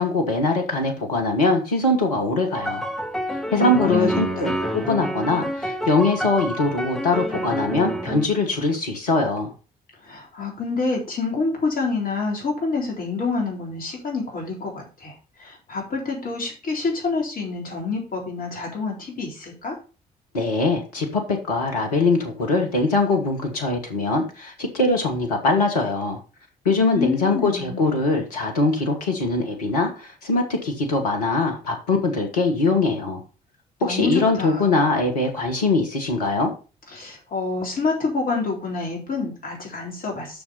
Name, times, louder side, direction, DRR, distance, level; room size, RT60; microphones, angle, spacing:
voice 1, 0.0-2.9 3.5-9.5 20.3-26.2 26.6-33.2 33.8-36.5, left 3 dB, 75° left, 3 dB, 1.6 m, -22 dB
sound 1, 2.5-8.3, equal, ahead, 1.4 m, -28 dB
voice 2, 3.5-4.5 10.0-19.8 26.8-27.8 33.8-34.9 36.9-40.4, left 3 dB, 45° left, 0 dB, 3.8 m, -27 dB
7.0 x 6.3 x 5.6 m, 0.34 s
figure-of-eight pair, 45°, 20 cm